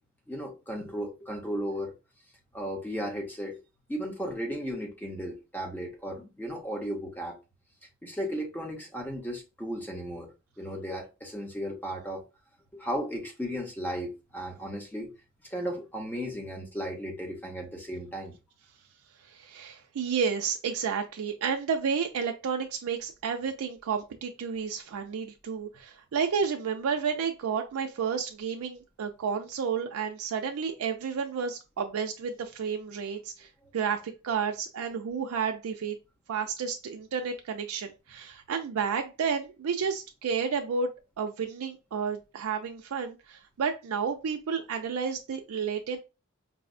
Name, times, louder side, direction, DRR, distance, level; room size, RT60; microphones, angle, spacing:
voice 1, 0.3-1.9 2.5-3.6 3.9-7.4 8.0-10.3 10.6-12.2 12.7-15.1 15.5-18.4, equal, 10° left, 0.6 m, -35 dB
voice 2, 19.2-36.0 36.3-46.0, right 6 dB, 80° right, 0.4 m, -31 dB
4.7 x 2.0 x 2.5 m
head